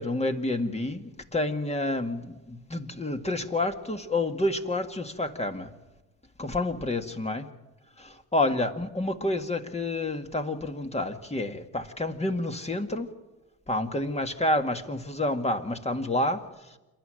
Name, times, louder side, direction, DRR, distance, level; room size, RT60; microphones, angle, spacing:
voice 1, 0.0-5.7 6.4-7.5 8.0-13.1 13.7-16.4, left 2 dB, 15° left, 6 dB, 2.0 m, -29 dB
27.5 x 11.5 x 9.0 m, 1.1 s
supercardioid pair, 80°, 41 cm